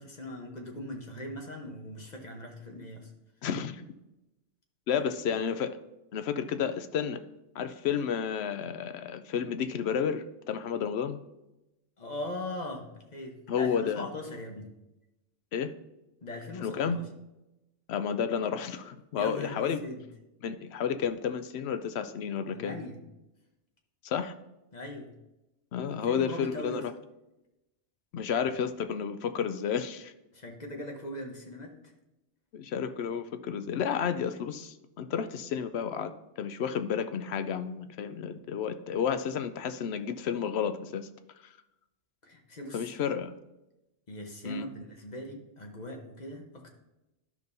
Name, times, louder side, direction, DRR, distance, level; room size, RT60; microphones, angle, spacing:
voice 1, 0.0-3.1 4.9-5.0 12.0-14.7 16.2-17.1 19.1-20.0 22.5-23.0 24.7-25.1 25.9-26.9 30.3-31.8 42.2-42.9 44.1-46.7, left 1 dB, 40° left, 2 dB, 1.1 m, -40 dB
voice 2, 3.4-3.8 4.9-5.8 6.1-7.2 7.5-11.2 13.5-14.1 15.5-15.7 16.6-17.0 17.9-19.8 20.4-22.7 24.0-24.3 25.7-26.9 28.1-30.1 32.5-36.1 36.4-41.1 42.7-43.3 44.4-44.7, left 7 dB, 70° left, 10 dB, 0.8 m, -31 dB
12.0 x 5.2 x 2.7 m, 0.95 s
omnidirectional pair, 1.2 m